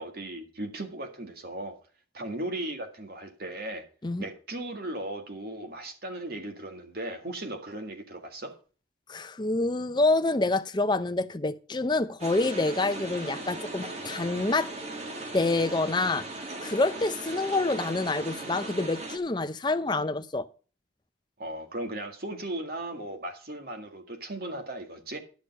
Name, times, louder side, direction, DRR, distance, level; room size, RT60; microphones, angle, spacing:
voice 1, 0.0-1.8 2.1-3.9 4.2-8.6 21.4-25.2, right 1 dB, 50° right, 1.8 m, -37 dB
voice 2, 9.1-14.7 15.3-16.3 16.6-20.5, left 2 dB, 25° left, 0.6 m, -27 dB
sound 1, 12.2-19.2, right 2 dB, 35° right, 1.6 m, -38 dB
11.5 x 6.6 x 5.3 m
head